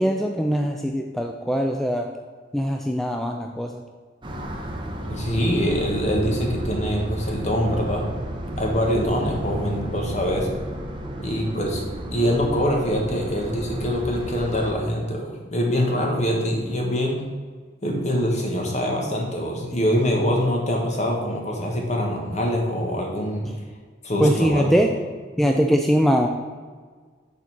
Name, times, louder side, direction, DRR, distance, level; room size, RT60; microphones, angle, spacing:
voice 1, 0.0-2.1 2.5-3.8 23.5-23.6 24.2-24.9 25.4-26.3, equal, ahead, 3 dB, 0.3 m, -21 dB
sound 1, 4.2-14.7, right 1 dB, 25° right, 0.8 m, -32 dB
voice 2, 5.1-8.1 8.6-10.5 11.2-11.8 12.1-17.2 17.8-23.5 24.0-24.7, equal, 40° left, 0 dB, 1.4 m, -24 dB
7.0 x 4.2 x 6.0 m, 1.5 s
head